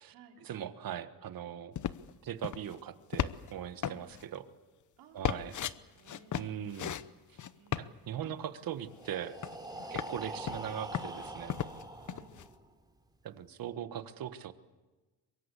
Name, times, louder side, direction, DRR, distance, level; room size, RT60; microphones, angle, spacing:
voice 1, 0.4-1.7 2.2-4.4 5.1-5.5 6.3-7.0 7.8-9.4 9.9-11.5 13.2-14.5, right 10 dB, 60° right, 11 dB, 1.5 m, -40 dB
sound 1, 1.7-2.1 2.4-2.7 3.1-3.5 3.8-4.2 5.2-5.7 6.1-7.0 7.4-7.9 9.1-9.2 9.4-10.1 10.5-11.8 12.1-12.4, left 10 dB, 50° left, 0.9 m, -35 dB
voice 2, 5.0-6.4 7.4-8.5 9.8-9.9 11.9-12.3, right 7 dB, 85° right, 2 dB, 3.7 m, -59 dB
Breathing, 8.8-12.7, right 1 dB, 10° right, 3.5 m, -44 dB
23.5 x 22.5 x 8.3 m, 1.2 s
cardioid pair, 105°, 40 cm